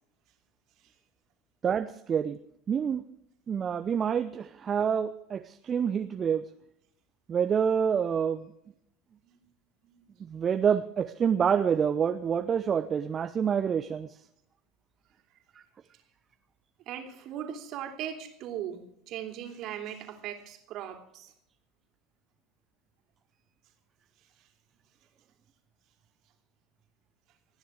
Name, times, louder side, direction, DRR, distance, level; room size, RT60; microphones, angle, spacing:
voice 1, 1.6-2.4 2.7-3.0 3.5-6.4 7.3-8.5 10.2-14.1, right 7 dB, 30° right, 9 dB, 0.8 m, -27 dB
voice 2, 16.9-21.3, right 10 dB, 50° right, 4 dB, 2.9 m, -39 dB
29.5 x 10.0 x 3.6 m, 0.77 s
figure-of-eight pair, 70°, 0 cm